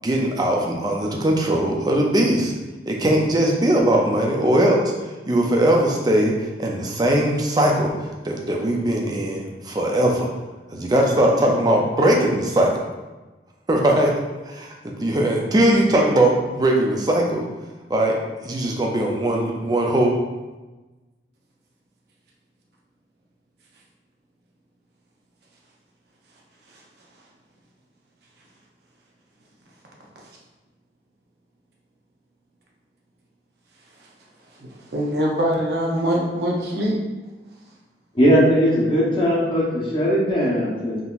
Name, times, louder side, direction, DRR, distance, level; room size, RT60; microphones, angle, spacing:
voice 1, 0.0-2.5 2.9-4.8 5.3-7.9 8.2-10.3 10.7-12.7 13.7-14.1 14.5-17.5 17.9-18.2 18.4-20.1, right 1 dB, 20° right, 0 dB, 0.4 m, -20 dB
voice 2, 34.6-37.0, equal, 65° right, -3 dB, 0.7 m, -23 dB
voice 3, 38.1-41.0, equal, 30° left, -6 dB, 0.8 m, -19 dB
3.7 x 2.8 x 2.4 m, 1.2 s
head